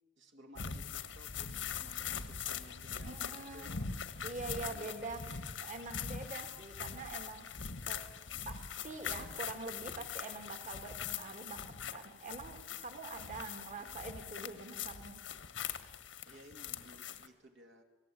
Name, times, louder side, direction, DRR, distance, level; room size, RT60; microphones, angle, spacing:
voice 1, 0.2-3.9 4.6-5.1 16.2-17.8, equal, 70° right, 3 dB, 2.5 m, -57 dB
sound 1, 0.6-17.3, left 7 dB, 90° left, 1.5 m, -42 dB
voice 2, 3.0-3.7 4.2-8.0 8.5-15.2, right 3 dB, 45° right, 6 dB, 2.4 m, -45 dB
28.0 x 19.5 x 8.7 m, 1.4 s
head